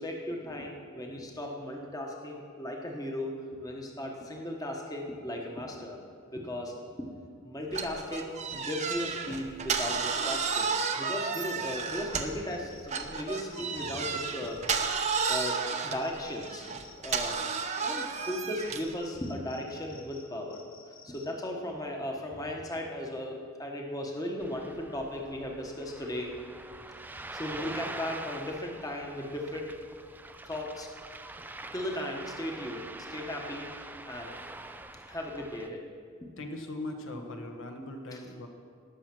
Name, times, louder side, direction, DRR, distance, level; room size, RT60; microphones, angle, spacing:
voice 1, 0.0-6.0 6.3-6.7 7.4-14.6 15.3-16.7 17.0-17.4 17.8-20.6 21.0-26.3 27.1-29.7 30.4-30.9 31.7-33.7 34.1-34.3 35.1-35.8 36.2-36.3, left 1 dB, 15° left, 1 dB, 1.1 m, -36 dB
sound 1, 7.7-12.5 12.9-18.9, right 5 dB, 35° right, 0.7 m, -32 dB
sound 2, 11.1-21.3, left 5 dB, 40° left, 2.0 m, -55 dB
Ocean, 24.4-35.7, right 2 dB, 10° right, 0.3 m, -44 dB
voice 2, 36.4-38.5, left 1 dB, 60° left, 3 dB, 1.2 m, -39 dB
18.0 x 6.4 x 6.0 m, 2.2 s
head